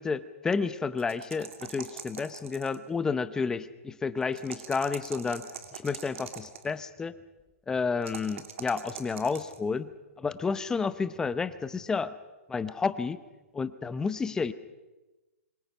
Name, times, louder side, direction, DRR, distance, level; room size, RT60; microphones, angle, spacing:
voice 1, 0.0-5.5 5.8-7.1 7.7-9.9 10.2-12.1 12.5-13.2 13.5-14.5, left 5 dB, 10° left, 14 dB, 0.7 m, -30 dB
sound 1, 1.0-2.9 4.3-6.7 8.0-9.6, right 8 dB, 60° right, 2.7 m, -43 dB
27.5 x 23.5 x 5.6 m, 1.1 s
hypercardioid pair, 155°, 8 cm